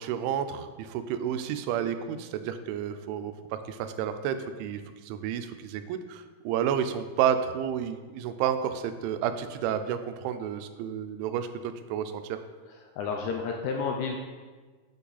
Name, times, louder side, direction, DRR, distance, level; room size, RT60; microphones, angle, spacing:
voice 1, 0.0-12.4, right 9 dB, 90° right, 9 dB, 3.0 m, -31 dB
voice 2, 12.7-14.2, left 5 dB, 80° left, 1 dB, 2.4 m, -31 dB
9.1 x 5.8 x 4.0 m, 1.4 s
omnidirectional pair, 5.3 m